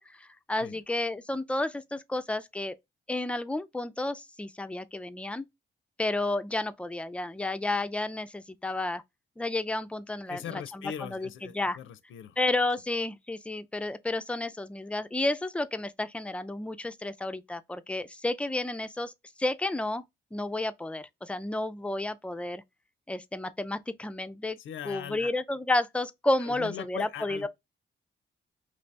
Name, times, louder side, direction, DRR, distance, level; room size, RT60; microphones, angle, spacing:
voice 1, 0.0-2.8 3.1-5.5 6.0-9.0 9.4-11.8 12.4-19.1 19.4-20.0 20.3-22.6 23.1-24.6 24.9-27.5, left 2 dB, 5° left, 0.3 m, -31 dB
voice 2, 10.3-12.4 24.6-25.3 26.4-27.5, left 9 dB, 85° left, 0.5 m, -40 dB
3.0 x 2.7 x 3.2 m
cardioid pair, 90°, 20 cm